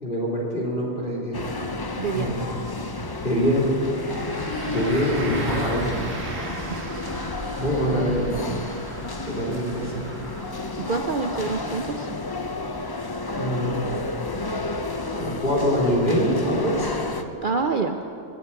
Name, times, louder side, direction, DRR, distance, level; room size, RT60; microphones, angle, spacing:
voice 1, 0.0-1.4 2.1-2.5 3.2-3.7 4.7-5.9 7.6-8.3 9.3-10.0 13.3-14.0 15.1-17.0, equal, 45° left, -4 dB, 3.7 m, -24 dB
sound 1, 1.3-17.2, left 3 dB, 25° left, 0.5 m, -31 dB
voice 2, 2.0-2.3 6.7-6.8 10.8-12.1 17.4-18.0, right 4 dB, 50° right, 6 dB, 0.7 m, -26 dB
sound 2, 4.0-17.0, right 2 dB, 85° right, 2.4 m, -37 dB
20.0 x 8.3 x 8.8 m, 2.7 s
omnidirectional pair, 1.3 m